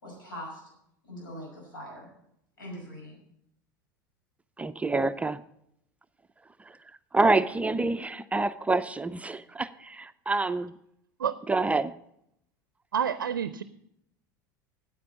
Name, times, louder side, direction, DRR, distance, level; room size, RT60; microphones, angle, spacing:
voice 1, 0.0-0.6 1.1-2.1 2.6-3.2, equal, 90° left, 5.7 m, -42 dB
voice 2, 4.6-5.4 7.1-10.8 11.5-11.9, right 3 dB, 15° right, 0.4 m, -27 dB
voice 3, 12.9-13.6, right 8 dB, 90° right, 0.4 m, -28 dB
9.4 x 8.5 x 7.0 m
hypercardioid pair, 85°, 11 cm